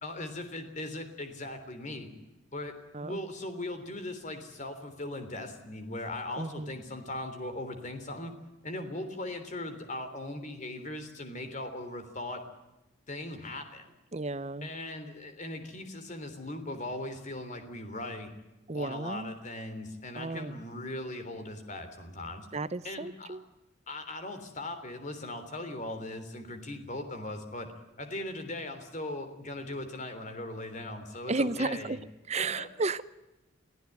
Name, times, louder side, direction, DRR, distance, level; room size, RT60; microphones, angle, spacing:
voice 1, 0.0-2.1 2.5-8.3 8.6-12.4 13.1-13.8 14.6-18.3 18.7-22.5 22.8-23.4 23.9-27.7 28.0-32.0 32.4-32.7, left 1 dB, 40° left, 8 dB, 3.4 m, -39 dB
voice 2, 6.4-6.7 14.1-14.7 18.7-19.3 20.2-20.6 22.5-23.4 31.3-32.0 32.3-33.0, right 3 dB, 35° right, 15 dB, 0.8 m, -33 dB
24.5 x 15.0 x 9.3 m, 1.0 s
head